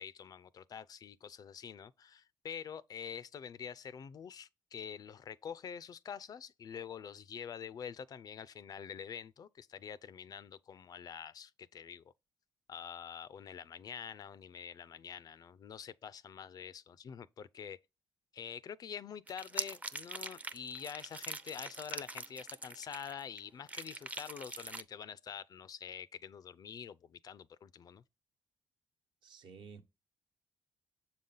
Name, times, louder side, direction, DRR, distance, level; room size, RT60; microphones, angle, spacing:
voice 1, 0.0-12.0 12.7-17.8 18.3-28.0, left 7 dB, 50° left, 0.4 m, -46 dB
sound 1, 19.3-23.4 23.7-24.8, right 2 dB, 15° right, 0.5 m, -43 dB
voice 2, 29.2-29.8, right 5 dB, 70° right, 1.1 m, -52 dB
7.0 x 4.0 x 3.8 m
cardioid pair, 85°, 8 cm